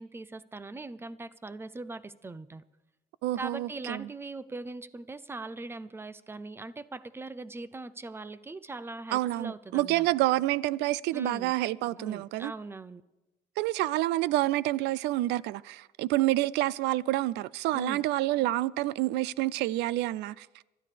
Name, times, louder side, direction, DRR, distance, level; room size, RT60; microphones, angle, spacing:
voice 1, 0.0-2.6 3.4-10.1 11.1-11.5 12.0-13.0 17.7-18.0, right 2 dB, 15° right, 0.5 m, -40 dB
voice 2, 3.2-4.1 9.1-12.5 13.6-20.6, right 16 dB, 85° right, 0.4 m, -28 dB
24.5 x 13.0 x 3.4 m
cardioid pair, 110°, 17 cm